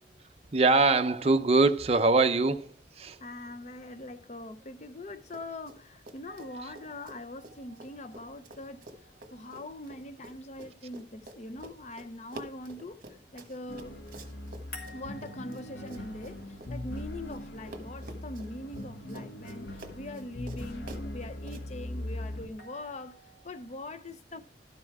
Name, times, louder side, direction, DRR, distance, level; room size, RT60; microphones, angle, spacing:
voice 1, 0.5-2.7 3.0-3.2, right 3 dB, 35° right, 0.6 m, -23 dB
voice 2, 3.2-8.9 9.3-13.0 13.3-14.0 14.9-24.4, left 1 dB, 40° left, 0.6 m, -42 dB
Run, 5.2-5.8 6.0-17.4 17.7-21.6, right 1 dB, 50° right, 1.3 m, -49 dB
sound 1, 6.2-11.2 14.7-18.8 22.6-23.8, left 1 dB, 55° left, 2.8 m, -54 dB
sound 2, 13.7-22.5, left 1 dB, 80° left, 1.1 m, -40 dB
12.5 x 5.6 x 4.7 m
head